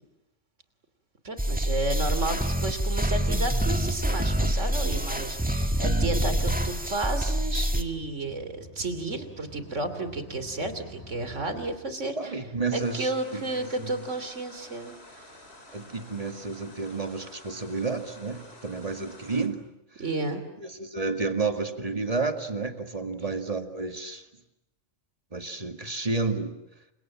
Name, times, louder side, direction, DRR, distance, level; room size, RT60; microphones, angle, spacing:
voice 1, 1.2-12.4 12.7-15.3 20.0-20.4, right 2 dB, 80° right, 10 dB, 3.3 m, -32 dB
sound 1, 1.4-7.8, right 1 dB, 5° right, 1.7 m, -26 dB
sound 2, 2.4-11.8, right 1 dB, 30° left, 7.7 m, -48 dB
voice 2, 12.2-13.9 15.7-20.0 20.6-24.3 25.3-26.6, right 3 dB, 30° right, 6 dB, 2.2 m, -31 dB
sound 3, 12.7-19.5, left 1 dB, 55° left, 4.6 m, -50 dB
29.5 x 26.5 x 7.4 m, 0.89 s
omnidirectional pair, 1.2 m